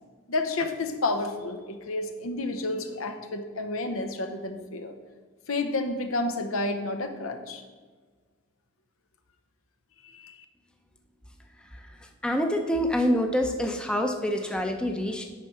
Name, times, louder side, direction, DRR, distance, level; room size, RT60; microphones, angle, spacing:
voice 1, 0.3-4.9 5.5-7.6 10.1-10.3, left 2 dB, 80° left, 6 dB, 0.8 m, -30 dB
voice 2, 11.6-15.2, equal, 5° left, 3 dB, 0.6 m, -27 dB
9.3 x 4.7 x 5.6 m, 1.4 s
head